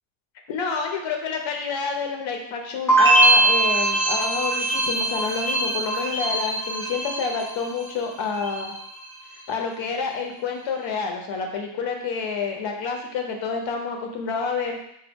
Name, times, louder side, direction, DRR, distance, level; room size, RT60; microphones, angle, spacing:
voice 1, 0.5-8.7 9.5-14.9, left 5 dB, 70° left, 3 dB, 0.8 m, -28 dB
sound 1, 2.9-7.9 8.2-8.9, right 2 dB, 5° left, 0.6 m, -21 dB
4.0 x 2.2 x 3.5 m, 0.75 s
cardioid pair, 175°, 46 cm